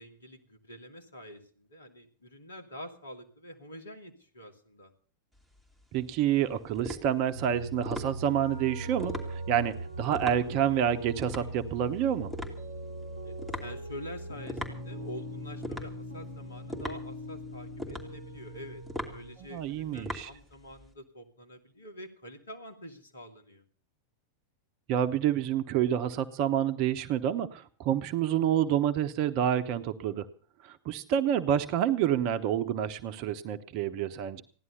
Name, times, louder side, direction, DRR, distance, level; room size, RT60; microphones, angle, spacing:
voice 1, 0.0-4.9 13.2-18.8 19.1-23.6, equal, 70° left, 5 dB, 2.5 m, -46 dB
sound 1, 5.3-20.9, equal, 5° left, 2.8 m, -42 dB
voice 2, 5.9-12.3 19.5-20.3 24.9-30.2 30.6-34.4, right 10 dB, 45° right, 10 dB, 0.9 m, -28 dB
sound 2, 7.3-19.4, right 1 dB, 85° left, 2.1 m, -40 dB
16.0 x 11.0 x 6.8 m, 0.43 s
figure-of-eight pair, 90°, 0 cm